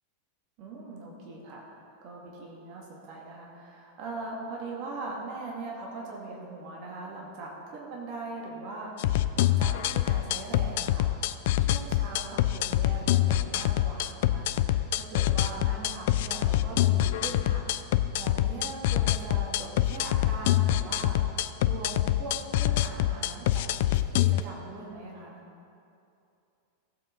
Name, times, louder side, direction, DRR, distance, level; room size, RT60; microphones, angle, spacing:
voice 1, 0.6-11.1 11.6-23.9 24.2-25.4, right 2 dB, 40° right, -2 dB, 2.3 m, -41 dB
sound 1, 9.0-24.4, left 13 dB, 50° left, 0.3 m, -25 dB
15.5 x 7.8 x 4.0 m, 2.6 s
figure-of-eight pair, 90°, 0 cm